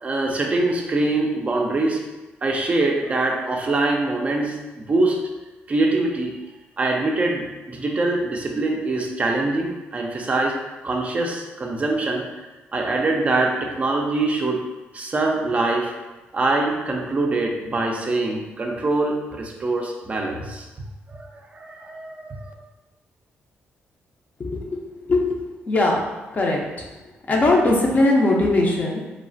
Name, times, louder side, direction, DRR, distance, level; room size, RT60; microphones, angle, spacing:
voice 1, 0.0-2.0 2.4-5.2 5.7-6.4 6.8-10.5 10.8-12.3 12.7-14.6 14.9-15.9 16.3-20.7 21.1-21.3 21.5-22.5, right 2 dB, 30° right, 1 dB, 0.4 m, -23 dB
voice 2, 24.4-24.8 25.1-26.0 26.3-26.6 27.3-29.1, left 2 dB, 35° left, -1 dB, 0.5 m, -20 dB
3.0 x 2.0 x 2.5 m, 1.1 s
cardioid pair, 95°, 4 cm